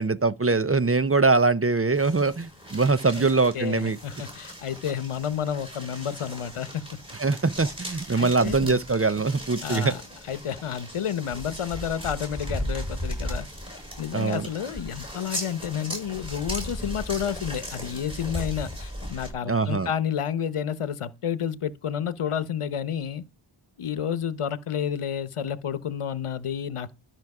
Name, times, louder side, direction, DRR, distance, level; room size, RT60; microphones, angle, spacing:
voice 1, 0.0-4.0 7.2-9.9 14.1-14.5 19.5-19.9, right 3 dB, 30° right, 0.6 m, -23 dB
sound 1, 1.9-19.3, equal, 10° right, 7.2 m, -37 dB
voice 2, 3.5-7.0 8.2-8.8 9.6-10.0 10.3-13.5 14.0-23.3 23.8-26.9, left 8 dB, 85° left, 0.9 m, -30 dB
13.0 x 6.1 x 4.8 m
wide cardioid pair, 70°, 50 cm